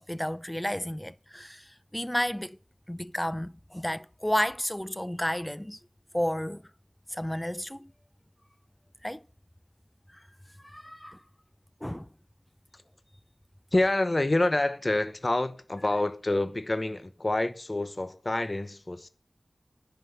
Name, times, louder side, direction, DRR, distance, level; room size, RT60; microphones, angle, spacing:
voice 1, 0.1-1.6 1.9-2.5 2.9-5.8 6.1-6.6 7.1-7.9 9.0-9.2 10.7-11.2 11.8-12.0, equal, 10° left, 0.7 m, -31 dB
voice 2, 13.7-19.1, left 2 dB, 45° left, 1.1 m, -27 dB
10.5 x 5.9 x 7.9 m
wide cardioid pair, 40°, 0 cm